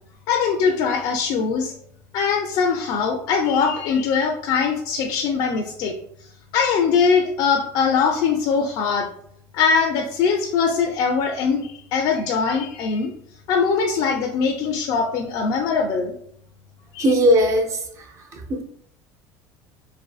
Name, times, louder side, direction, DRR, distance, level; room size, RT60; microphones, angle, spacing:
voice 1, 0.3-1.7 2.1-5.9 6.5-9.1 9.5-13.1 13.5-16.1 16.9-17.0, left 5 dB, 55° left, 2 dB, 0.3 m, -21 dB
voice 2, 17.0-18.0 18.3-18.6, equal, 35° right, 2 dB, 0.5 m, -19 dB
2.5 x 2.5 x 2.3 m, 0.68 s
cardioid pair, 140°, 8 cm